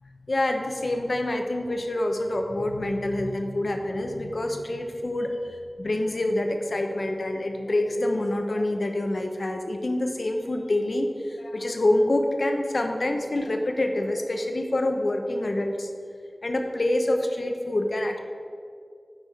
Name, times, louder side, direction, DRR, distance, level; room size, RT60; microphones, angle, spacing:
voice 1, 0.3-15.9 16.4-18.2, left 1 dB, 70° left, 4 dB, 0.8 m, -26 dB
8.7 x 4.8 x 5.0 m, 2.2 s
wide cardioid pair, 55°, 0 cm